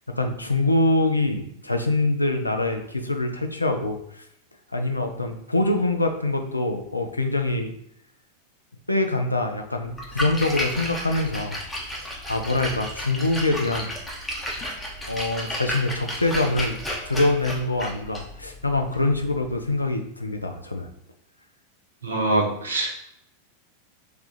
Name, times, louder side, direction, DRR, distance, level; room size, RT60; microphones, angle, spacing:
voice 1, 0.1-4.2 4.7-7.7 8.9-11.6 11.9-13.9 14.6-14.7 15.0-16.8 17.1-20.9, left 2 dB, 85° left, 5 dB, 0.4 m, -24 dB
Splash splatter, 9.9-19.8, equal, 10° left, 0.7 m, -33 dB
voice 2, 22.0-23.1, right 2 dB, 70° right, 1 dB, 0.7 m, -24 dB
3.3 x 2.3 x 3.9 m, 0.75 s
figure-of-eight pair, 90°, 0 cm